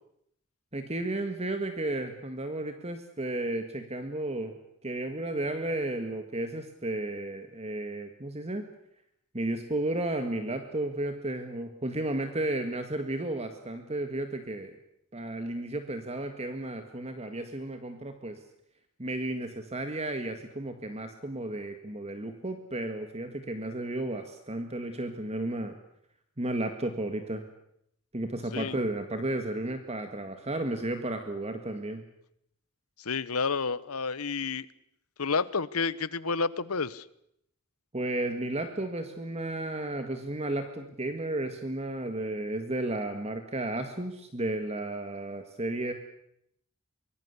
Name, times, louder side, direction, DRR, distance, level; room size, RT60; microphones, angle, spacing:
voice 1, 0.7-4.6 4.8-8.7 9.3-14.8 15.1-18.4 19.0-25.8 26.4-27.4 28.1-32.0 37.9-45.9, right 1 dB, 30° right, 7 dB, 1.9 m, -33 dB
voice 2, 33.0-34.7 35.2-37.0, left 4 dB, 85° left, 18 dB, 1.1 m, -30 dB
24.5 x 22.0 x 8.3 m, 0.74 s
head